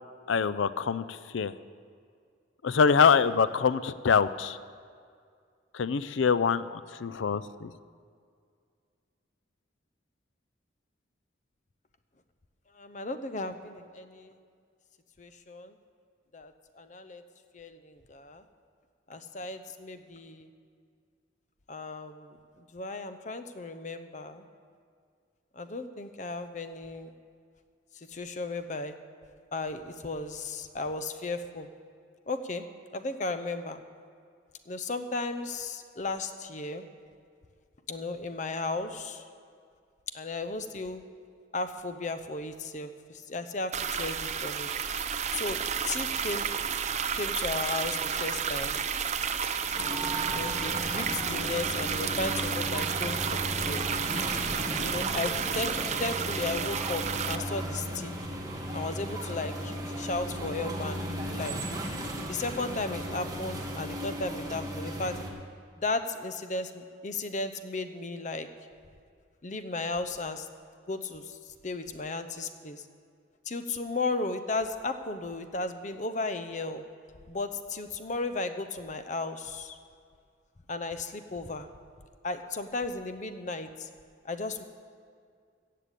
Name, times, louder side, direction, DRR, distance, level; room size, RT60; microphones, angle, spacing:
voice 1, 0.3-1.5 2.6-4.6 5.7-7.7, left 6 dB, 85° left, 15 dB, 0.5 m, -25 dB
voice 2, 12.7-14.4 15.2-15.7 16.3-17.2 17.5-18.4 19.1-20.5 21.7-24.4 25.5-27.1 27.9-28.9 29.5-31.7 32.3-32.6 32.9-33.8 34.7-36.8 37.9-39.3 40.1-41.0 41.5-43.7 44.0-44.7 45.3-45.6 45.9-46.5 47.1-48.8 50.3-53.9 54.8-55.7 56.0-58.1 58.7-61.0 61.3-61.6 62.3-65.2 65.8-68.5 69.4-70.5 70.9-71.4 71.6-72.8 73.5-76.8 77.3-79.8 80.7-81.7 82.2-83.9 84.2-84.6, left 3 dB, 40° left, 9 dB, 0.7 m, -35 dB
sound 1, 43.7-57.4, right 7 dB, 35° right, 0.5 m, -31 dB
sound 2, 49.7-65.3, right 1 dB, 20° right, 1.4 m, -36 dB
15.5 x 6.8 x 8.3 m, 2.2 s
head